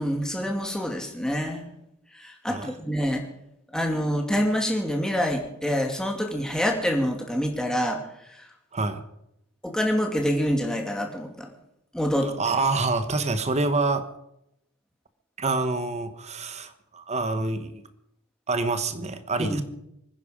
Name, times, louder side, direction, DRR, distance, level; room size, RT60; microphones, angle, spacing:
voice 1, 0.0-1.7 2.1-3.3 3.7-8.0 8.3-8.5 9.6-11.5 11.9-12.3 19.4-19.6, equal, 5° left, 2 dB, 2.3 m, -26 dB
voice 2, 12.2-14.1 15.4-17.8 18.5-19.6, right 3 dB, 30° right, 10 dB, 1.0 m, -27 dB
24.5 x 10.5 x 5.0 m, 0.80 s
head